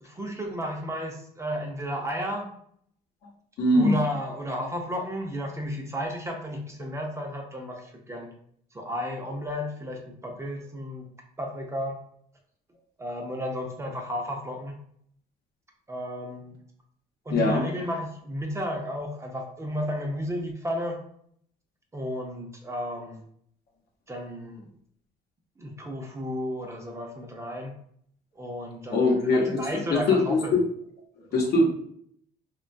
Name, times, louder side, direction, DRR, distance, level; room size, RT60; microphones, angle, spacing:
voice 1, 0.0-2.5 3.7-8.3 8.7-11.1 11.4-12.0 13.0-14.7 15.9-16.6 17.3-21.0 21.9-23.2 24.1-24.7 25.6-27.7 28.4-30.6 31.3-31.5, equal, 15° right, 1 dB, 0.5 m, -33 dB
voice 2, 3.6-3.9 17.3-17.6 28.9-29.6 30.1-30.6 31.3-31.7, left 2 dB, 70° left, 1 dB, 0.8 m, -21 dB
3.0 x 2.2 x 2.5 m, 0.66 s
cardioid pair, 110°, 17 cm